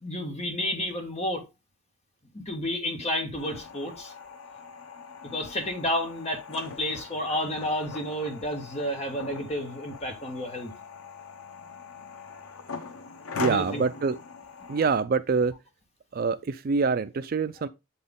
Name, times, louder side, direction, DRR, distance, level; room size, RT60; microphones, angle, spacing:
voice 1, 0.0-1.4 2.3-4.1 5.3-10.7 13.4-13.8, left 1 dB, 30° left, 1.6 m, -31 dB
sound 1, 3.4-15.0, left 5 dB, 80° left, 0.8 m, -41 dB
voice 2, 13.4-14.2 14.7-15.5 16.1-17.7, right 5 dB, 40° right, 0.3 m, -25 dB
7.7 x 4.2 x 3.6 m
head